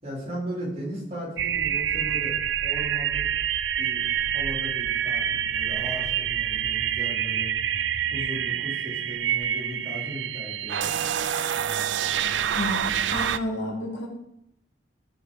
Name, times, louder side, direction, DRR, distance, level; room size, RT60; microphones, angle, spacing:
voice 1, 0.0-3.3 3.8-4.0 4.3-7.5 8.1-11.1, equal, 35° right, -6 dB, 4.2 m, -37 dB
sound 1, 1.4-13.4, right 9 dB, 85° right, 0.4 m, -27 dB
voice 2, 12.5-14.1, left 1 dB, 70° left, 0 dB, 2.2 m, -31 dB
13.5 x 5.0 x 5.0 m, 0.78 s
head